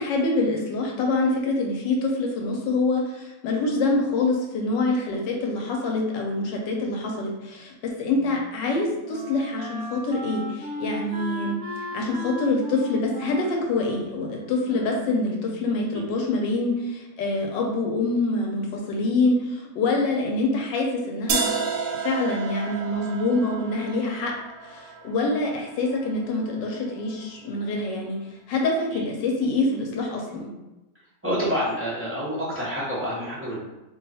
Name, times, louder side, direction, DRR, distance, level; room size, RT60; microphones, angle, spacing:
voice 1, 0.0-11.6 11.9-24.3 24.6-28.2 28.5-30.5, left 2 dB, 85° left, 0 dB, 1.4 m, -25 dB
Wind instrument woodwind instrument, 8.0-15.8, equal, 55° right, 0.9 m, -37 dB
sound 1, 21.3-27.2, right 5 dB, 85° right, 0.7 m, -32 dB
voice 2, 31.2-33.6, equal, 10° right, -9 dB, 0.6 m, -27 dB
2.9 x 2.4 x 4.0 m, 0.99 s
omnidirectional pair, 1.9 m